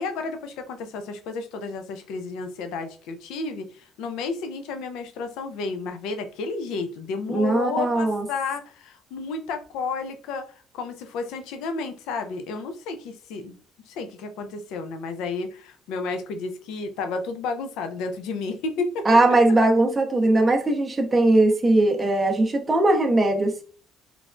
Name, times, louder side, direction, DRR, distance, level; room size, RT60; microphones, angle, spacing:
voice 1, 0.0-13.6 13.9-19.2, left 4 dB, 85° left, 8 dB, 0.3 m, -32 dB
voice 2, 7.3-8.3 19.0-23.6, right 2 dB, 20° right, 3 dB, 0.4 m, -20 dB
3.1 x 2.1 x 2.4 m, 0.39 s
cardioid pair, 110°, 0 cm